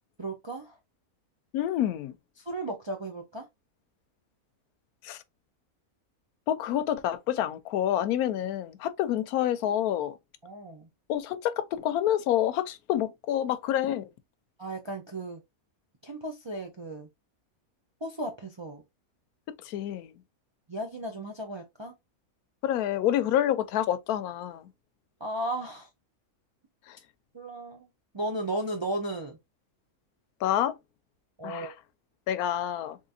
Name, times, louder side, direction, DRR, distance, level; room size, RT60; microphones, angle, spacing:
voice 1, 0.2-0.7 2.5-3.5 10.4-10.9 14.6-15.4 16.0-17.1 18.0-18.8 20.7-21.9 25.2-25.9 27.3-27.9 28.1-29.4 31.4-31.7, right 1 dB, 45° right, 0.3 m, -35 dB
voice 2, 1.5-2.2 5.0-5.2 6.5-10.2 11.1-14.1 19.5-20.1 22.6-24.7 26.9-27.0 30.4-30.8 31.4-31.7 32.3-33.0, left 11 dB, 90° left, 1.1 m, -28 dB
3.7 x 3.2 x 2.7 m
omnidirectional pair, 1.5 m